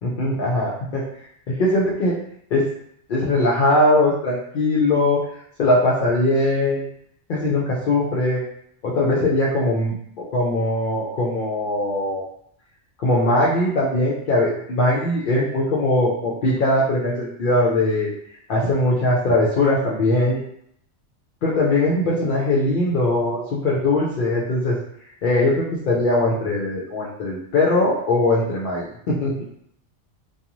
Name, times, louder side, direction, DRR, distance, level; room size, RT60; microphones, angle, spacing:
voice 1, 0.0-1.0 1.5-2.2 2.5-2.7 3.1-5.2 5.6-6.9 7.3-8.4 8.8-12.2 13.0-18.1 18.5-20.4 21.4-24.8 25.2-29.3, left 2 dB, 60° left, -4 dB, 0.6 m, -20 dB
2.5 x 2.3 x 2.9 m, 0.71 s
omnidirectional pair, 1.2 m